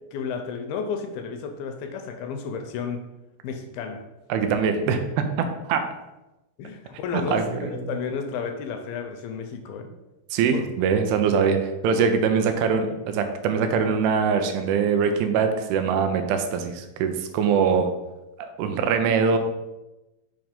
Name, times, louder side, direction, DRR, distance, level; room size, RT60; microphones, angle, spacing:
voice 1, 0.1-3.0 3.4-4.0 6.6-9.9 10.5-10.7 12.9-13.0 19.3-19.4, left 5 dB, 80° left, 6 dB, 2.3 m, -32 dB
voice 2, 4.3-5.0 5.4-5.8 7.3-7.8 10.3-17.9 18.4-19.4, right 6 dB, 85° right, 6 dB, 2.5 m, -23 dB
6.4 x 3.0 x 5.1 m, 0.99 s
omnidirectional pair, 4.4 m